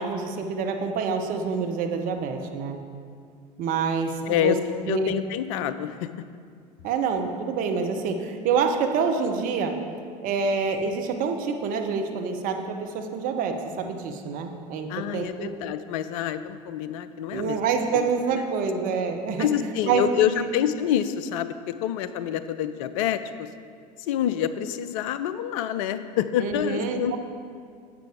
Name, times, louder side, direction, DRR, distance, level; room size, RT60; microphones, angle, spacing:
voice 1, 0.0-2.8 3.6-4.5 4.9-5.1 6.8-9.7 10.2-15.5 17.3-19.5 19.9-20.5 26.4-27.2, right 5 dB, 40° right, 4 dB, 0.9 m, -27 dB
voice 2, 4.3-4.6 4.9-6.1 14.9-17.6 17.9-18.1 19.4-23.5 24.1-27.2, left 10 dB, 50° left, 12 dB, 0.5 m, -27 dB
9.7 x 7.5 x 3.6 m, 2.2 s
figure-of-eight pair, 75°, 21 cm